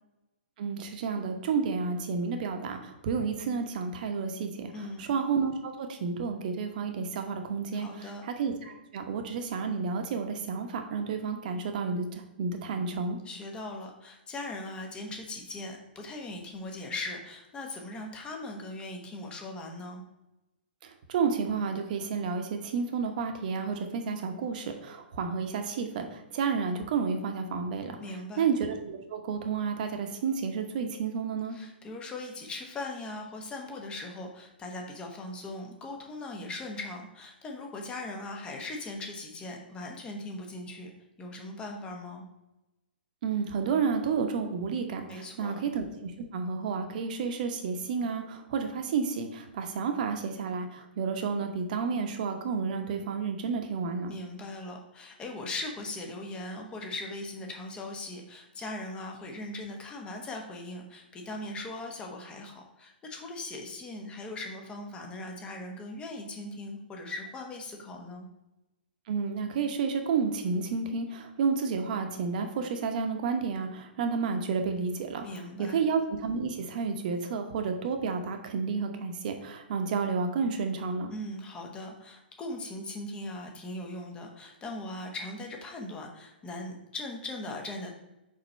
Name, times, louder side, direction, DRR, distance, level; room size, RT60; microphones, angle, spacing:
voice 1, 0.6-13.2 21.1-28.0 28.4-31.5 43.2-54.1 69.1-75.3 75.6-81.1, right 5 dB, 50° right, 5 dB, 1.0 m, -31 dB
voice 2, 4.7-5.1 7.7-8.2 13.2-20.0 28.0-28.5 31.5-40.9 41.2-42.3 45.1-45.6 54.1-68.3 75.2-75.8 81.1-87.9, left 2 dB, 15° left, 2 dB, 1.0 m, -39 dB
5.2 x 4.2 x 4.4 m, 0.97 s
hypercardioid pair, 125°, 6 cm